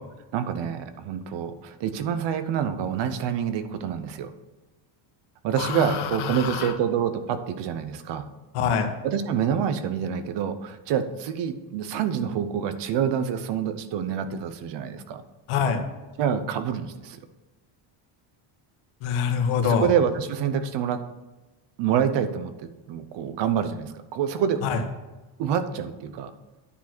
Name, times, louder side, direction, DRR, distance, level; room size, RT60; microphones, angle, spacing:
voice 1, 0.3-4.3 5.4-8.3 9.0-15.2 16.2-17.2 19.6-21.0 21.8-24.6 25.4-26.3, right 8 dB, 60° right, 11 dB, 0.9 m, -27 dB
voice 2, 5.6-6.7 8.5-8.9 15.5-15.8 19.0-19.9 24.6-24.8, left 6 dB, 85° left, 5 dB, 1.4 m, -25 dB
10.0 x 4.7 x 6.0 m, 1.1 s
cardioid pair, 165°, 49 cm